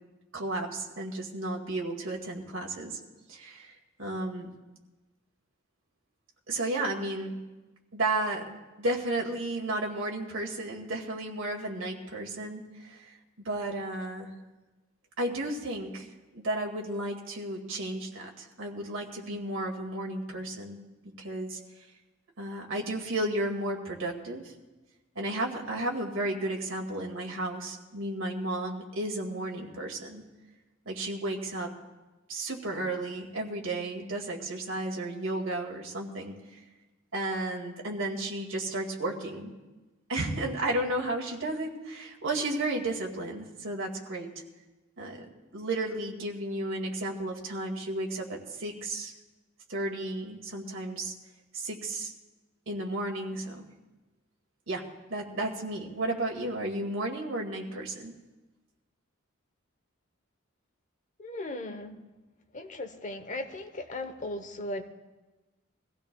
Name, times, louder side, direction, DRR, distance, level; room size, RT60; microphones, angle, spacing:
voice 1, 0.3-3.0 3.3-4.5 6.5-7.4 7.9-14.3 15.2-16.1 16.3-20.8 21.2-21.6 22.4-24.5 25.2-30.2 30.9-31.7 32.3-36.6 37.1-39.5 40.1-44.3 45.0-49.1 49.7-51.1 51.5-52.1 52.7-53.7 54.7-58.1, right 1 dB, 70° right, 0 dB, 2.0 m, -33 dB
voice 2, 61.2-62.0 62.5-64.8, left 1 dB, 40° left, 6 dB, 1.0 m, -37 dB
23.5 x 15.5 x 2.3 m, 1.1 s
head